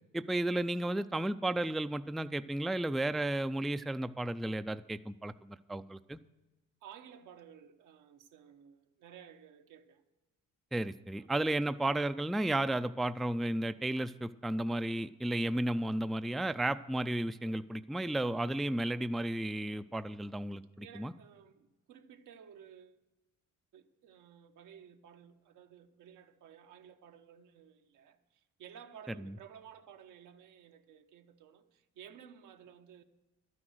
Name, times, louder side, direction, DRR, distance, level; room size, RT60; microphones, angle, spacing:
voice 1, 0.1-6.2 10.7-21.1, right 1 dB, ahead, 0.3 m, -33 dB
voice 2, 6.8-10.1 11.2-11.4 20.8-23.0 23.7-33.0, right 8 dB, 85° right, 1.0 m, -55 dB
12.0 x 9.8 x 6.3 m
cardioid pair, 90°, 30 cm